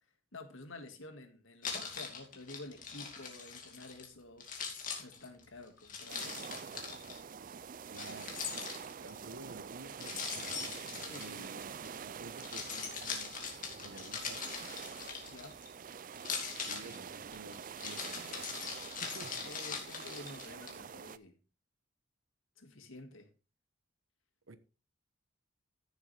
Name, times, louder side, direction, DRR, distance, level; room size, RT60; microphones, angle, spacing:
voice 1, 0.3-4.5 5.0-6.6 11.0-11.6 15.3-15.6 19.4-21.4 22.6-23.3, left 2 dB, 80° left, 2.0 m, -50 dB
Keys jangling, 1.6-4.1 4.4-7.2 7.9-9.2 10.0-11.9 12.3-15.7 16.2-20.7, left 6 dB, 40° left, 2.5 m, -41 dB
sound 1, 6.1-21.2, right 7 dB, 40° right, 0.4 m, -46 dB
voice 2, 7.9-10.6 10.9-11.7 12.0-14.4 16.5-18.5 19.0-19.3 24.5-24.6, right 3 dB, 80° right, 1.1 m, -52 dB
15.0 x 7.2 x 3.4 m
head